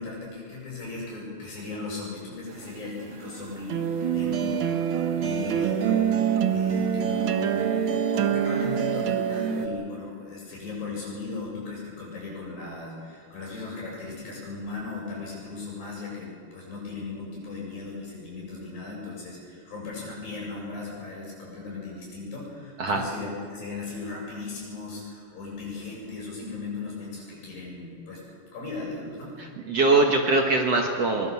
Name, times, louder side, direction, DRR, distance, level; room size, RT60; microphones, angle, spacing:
voice 1, 0.0-7.9 8.1-29.4, left 3 dB, 70° left, -3 dB, 9.6 m, -37 dB
sound 1, 2.5-9.7, right 8 dB, 80° right, 1.1 m, -25 dB
voice 2, 29.4-31.3, right 3 dB, 50° right, 2 dB, 2.2 m, -22 dB
23.0 x 22.0 x 7.2 m, 2.1 s
omnidirectional pair, 4.2 m